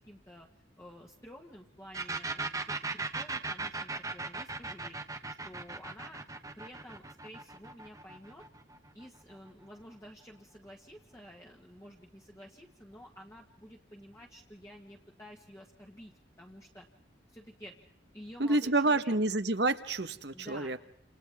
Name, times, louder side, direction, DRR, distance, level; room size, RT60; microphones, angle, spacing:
voice 1, 0.1-0.5 0.8-5.0 5.3-6.2 6.6-8.4 8.9-16.9 17.3-17.8 18.1-19.1 20.3-20.8, equal, 15° left, -2 dB, 1.6 m, -51 dB
sound 1, 1.9-9.5, right 3 dB, 20° right, 1.2 m, -38 dB
voice 2, 18.4-20.8, right 2 dB, 60° right, 9 dB, 1.3 m, -28 dB
29.5 x 28.0 x 3.6 m, 0.72 s
head